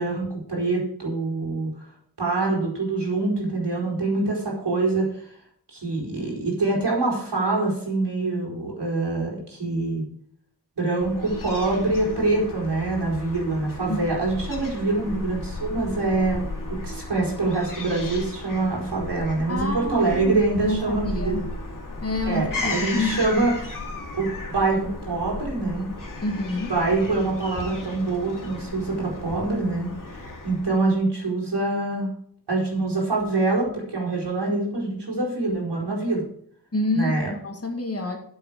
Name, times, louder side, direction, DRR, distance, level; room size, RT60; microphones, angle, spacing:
voice 1, 0.0-1.9 2.2-5.3 5.7-10.0 10.8-21.4 22.2-23.5 24.1-25.9 26.7-29.9 30.4-32.1 32.5-36.2 36.9-37.3, right 3 dB, 90° right, -3 dB, 4.5 m, -25 dB
Fowl / Gull seagull, 11.0-30.9, left 2 dB, 50° left, 2.5 m, -35 dB
voice 2, 19.5-21.4 22.0-23.2 26.2-26.7 36.7-37.1 37.4-38.2, left 2 dB, 35° left, 3 dB, 2.1 m, -28 dB
9.6 x 7.6 x 5.3 m, 0.64 s
wide cardioid pair, 90°, 40 cm